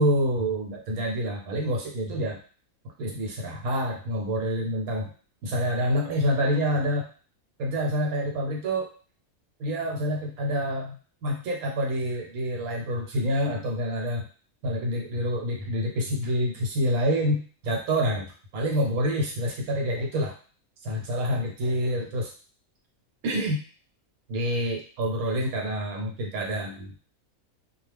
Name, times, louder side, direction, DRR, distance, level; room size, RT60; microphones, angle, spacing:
voice 1, 0.0-2.4 3.0-5.1 5.4-7.1 7.6-8.9 9.6-10.9 11.2-14.3 14.6-20.3 20.8-22.3 23.2-23.6 24.3-27.0, equal, 80° right, -1 dB, 1.3 m, -27 dB
2.3 x 2.2 x 3.3 m, 0.40 s
omnidirectional pair, 1.5 m